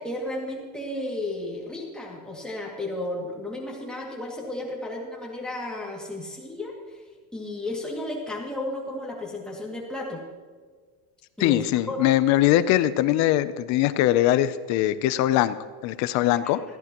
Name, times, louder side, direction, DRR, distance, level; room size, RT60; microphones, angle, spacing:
voice 1, 0.0-7.0 7.3-10.2 11.4-12.1, left 1 dB, ahead, -3 dB, 2.3 m, -33 dB
voice 2, 11.4-15.6 15.8-16.6, left 13 dB, 45° left, 13 dB, 0.6 m, -21 dB
19.0 x 14.5 x 3.0 m, 1.6 s
cardioid pair, 170°, 41 cm